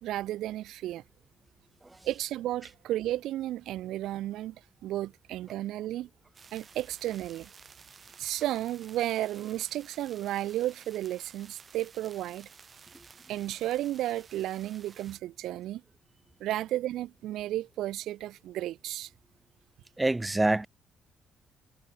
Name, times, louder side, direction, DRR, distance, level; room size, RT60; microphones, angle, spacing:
voice 1, 0.0-1.0 2.0-6.1 6.5-7.5 8.2-12.5 13.3-15.8 16.4-19.1, right 14 dB, 85° right, 0.7 m, -33 dB
sound 1, 6.3-15.2, right 5 dB, 40° right, 3.0 m, -54 dB
voice 2, 20.0-20.7, right 2 dB, 15° right, 0.4 m, -26 dB
cardioid pair, 90°, 0 cm